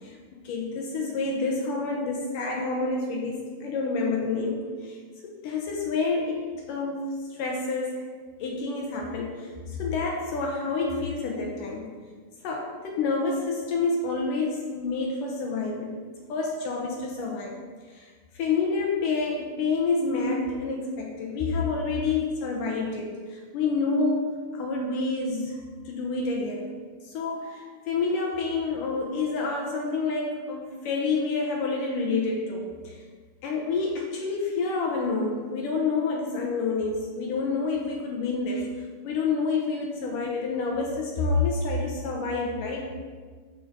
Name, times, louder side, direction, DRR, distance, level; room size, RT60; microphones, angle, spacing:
voice 1, 0.0-5.0 5.2-6.4 6.7-8.1 8.4-11.9 12.4-17.6 17.9-25.6 25.9-33.0 33.4-38.7 39.0-42.9, left 4 dB, 75° left, 0 dB, 2.2 m, -28 dB
13.5 x 5.0 x 3.7 m, 1.5 s
omnidirectional pair, 4.3 m